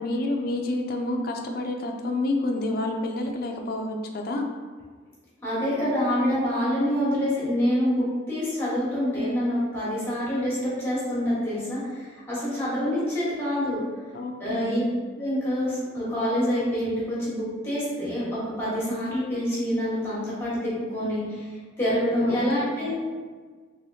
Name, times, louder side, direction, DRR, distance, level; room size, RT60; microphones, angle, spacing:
voice 1, 0.0-4.5 14.1-14.9 22.2-22.4 22.8-22.9, left 2 dB, 50° left, 3 dB, 0.3 m, -29 dB
voice 2, 5.4-13.8 14.4-14.8 15.2-21.5 21.8-22.9, equal, 10° left, -9 dB, 1.2 m, -26 dB
3.3 x 3.0 x 2.6 m, 1.5 s
head